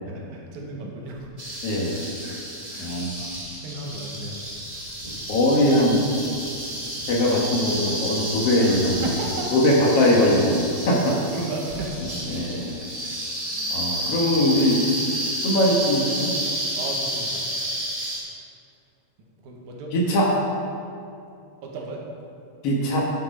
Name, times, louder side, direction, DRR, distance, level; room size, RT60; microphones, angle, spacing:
voice 1, 0.1-1.3 2.2-2.4 2.7-4.4 8.6-9.5 10.9-12.0 12.8-13.2 13.5-14.2 16.7-17.5 19.4-20.3 21.6-22.0, right 2 dB, 85° right, -1 dB, 2.7 m, -36 dB
sound 1, 1.4-18.2, right 1 dB, 25° right, 0.7 m, -31 dB
voice 2, 1.6-2.1 2.8-3.1 5.3-6.0 7.1-9.2 9.5-11.2 12.3-12.8 13.7-15.0 15.4-16.4 19.9-20.3 22.6-23.0, left 1 dB, 60° left, -2 dB, 2.1 m, -21 dB
9.7 x 6.7 x 5.3 m, 2.5 s
omnidirectional pair, 3.3 m